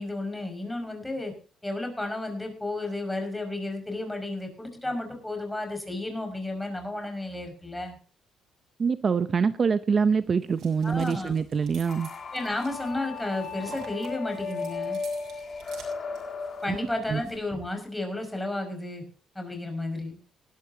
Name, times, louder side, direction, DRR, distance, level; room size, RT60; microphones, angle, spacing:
voice 1, 0.0-1.3 1.6-8.0 10.8-11.3 12.3-15.0 16.6-19.0 19.4-20.2, left 2 dB, 10° left, 4 dB, 5.4 m, -32 dB
voice 2, 8.8-12.1 16.7-16.8 17.1-17.2, right 5 dB, 45° right, 13 dB, 0.6 m, -25 dB
sound 1, 9.9-17.4, right 6 dB, 75° right, 6.8 m, -51 dB
sound 2, 11.9-17.0, left 4 dB, 45° left, 2.2 m, -35 dB
20.0 x 12.5 x 2.8 m, 0.39 s
cardioid pair, 90°, 0 cm